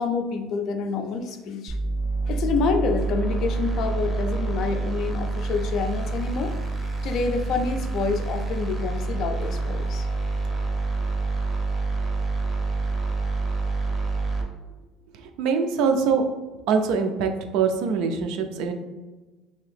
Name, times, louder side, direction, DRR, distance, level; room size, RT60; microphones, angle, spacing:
voice 1, 0.0-1.8 2.3-6.5 7.0-10.1, left 5 dB, 50° left, 5 dB, 0.4 m, -27 dB
sound 1, 1.7-14.4, right 3 dB, 20° right, 0.6 m, -27 dB
voice 2, 15.1-16.3 16.7-18.7, right 5 dB, 70° right, 6 dB, 0.4 m, -23 dB
2.8 x 2.7 x 3.3 m, 1.2 s
cardioid pair, 135°, 0 cm